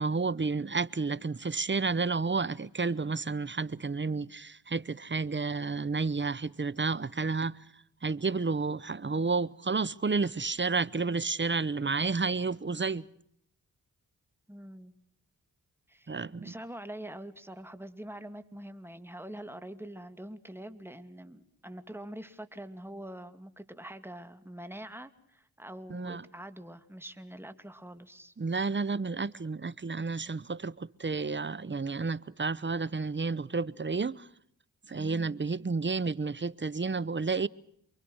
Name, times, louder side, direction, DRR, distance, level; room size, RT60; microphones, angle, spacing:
voice 1, 0.0-7.5 8.0-13.0 16.1-16.5 25.9-26.2 28.4-34.3 34.9-37.5, right 4 dB, 30° right, 0.9 m, -31 dB
voice 2, 14.5-14.9 15.9-28.3 34.9-35.5, right 1 dB, 5° right, 2.5 m, -45 dB
29.0 x 23.0 x 6.4 m
cardioid pair, 50°, 40 cm